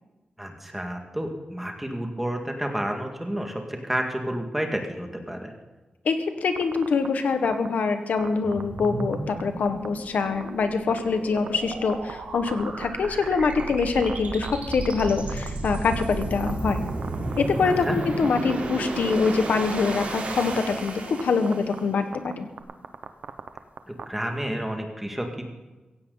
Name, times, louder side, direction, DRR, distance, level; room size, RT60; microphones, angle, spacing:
voice 1, 0.4-5.5 17.9-18.0 24.1-25.5, right 1 dB, 5° right, 3 dB, 2.1 m, -30 dB
voice 2, 6.0-16.8 17.4-22.5, left 4 dB, 75° left, 7 dB, 1.6 m, -24 dB
sound 1, 6.6-7.1 7.4-7.7 8.2-9.4 9.7-9.9 10.3-10.5 10.9-11.0 11.4-12.1 12.5-15.5 15.7-16.5 16.8-17.4 17.7-18.5 19.0-19.6 19.9-20.1 20.4-20.9 21.2-21.3 21.5-21.8 22.1-22.3 22.6-24.0, right 6 dB, 75° right, 1.0 m, -36 dB
sound 2, 8.4-21.8, right 2 dB, 60° right, 3.6 m, -33 dB
16.5 x 16.0 x 4.1 m, 1.2 s
wide cardioid pair, 150°, 3 cm